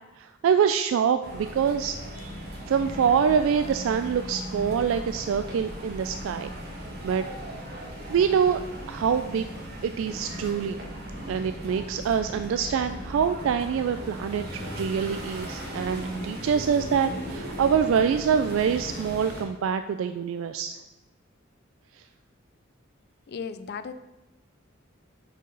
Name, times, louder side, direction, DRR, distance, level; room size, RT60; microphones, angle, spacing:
voice 1, 0.2-2.0 2.7-6.5 7.0-7.2 8.1-8.6 8.9-9.5 9.8-10.8 11.3-20.8, right 7 dB, 80° right, 9 dB, 0.3 m, -25 dB
sound 1, 1.2-19.4, right 1 dB, 55° right, 1.6 m, -37 dB
voice 2, 23.3-23.9, left 6 dB, 55° left, 12 dB, 0.4 m, -35 dB
6.0 x 4.6 x 5.3 m, 1.0 s
head